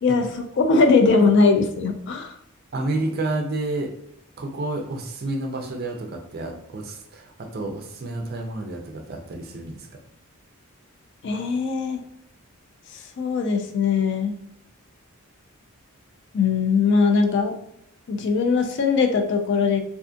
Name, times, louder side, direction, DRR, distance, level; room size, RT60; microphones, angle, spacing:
voice 1, 0.0-2.3 11.2-12.0 12.9-14.4 16.3-17.6 18.1-19.8, left 4 dB, 55° left, 5 dB, 0.3 m, -20 dB
voice 2, 2.7-3.9 4.4-9.9, right 2 dB, 45° right, 4 dB, 0.4 m, -30 dB
2.5 x 2.4 x 2.4 m, 0.78 s
head